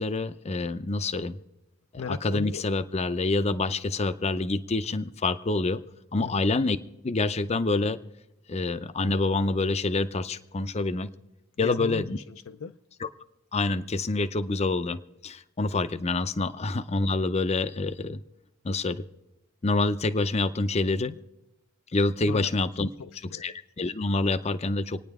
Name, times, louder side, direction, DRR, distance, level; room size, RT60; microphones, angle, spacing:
voice 1, 0.0-1.4 1.9-5.8 6.1-6.8 7.0-8.0 8.5-11.1 11.6-12.2 13.0-13.1 13.5-18.2 18.6-19.0 19.6-21.1 21.9-22.9 23.4-25.0, left 2 dB, 30° left, 0.5 m, -27 dB
voice 2, 2.0-2.6 6.2-6.4 11.6-12.8 21.0-21.2 22.3-22.5 22.8-23.5, left 5 dB, 75° left, 0.5 m, -37 dB
27.0 x 9.7 x 3.6 m
head